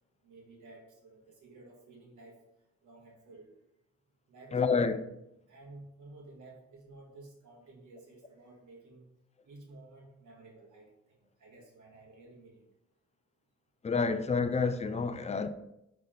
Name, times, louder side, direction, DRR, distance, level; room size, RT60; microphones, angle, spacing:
voice 1, 0.2-2.4 2.8-3.5 4.3-4.8 5.5-9.1 9.5-12.7, right 2 dB, 80° right, 1.9 m, -53 dB
voice 2, 4.5-5.0 13.8-15.5, left 4 dB, 25° left, 0.4 m, -29 dB
5.8 x 4.0 x 5.1 m
wide cardioid pair, 135°, 30 cm